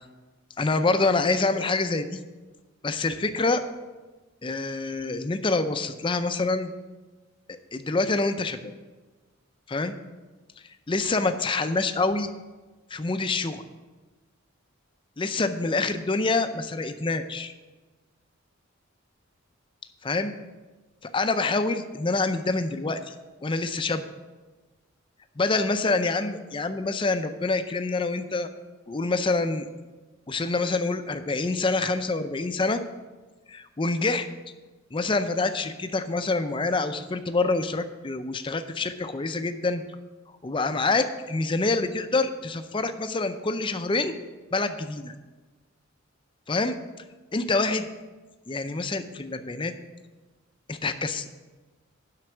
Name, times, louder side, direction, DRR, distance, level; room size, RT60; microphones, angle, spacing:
voice 1, 0.6-2.2 2.8-3.6 4.4-6.7 7.5-8.7 9.7-9.9 10.9-12.3 12.9-13.6 15.2-17.5 20.0-20.3 21.1-23.1 23.4-24.0 25.4-28.5 28.9-29.7 30.3-32.8 33.5-34.2 34.9-39.8 40.4-44.2 44.5-45.1 46.5-46.8 47.3-47.8 48.5-49.7 50.7-51.3, left 3 dB, 25° left, 9 dB, 0.5 m, -26 dB
7.7 x 5.8 x 7.3 m, 1.2 s
head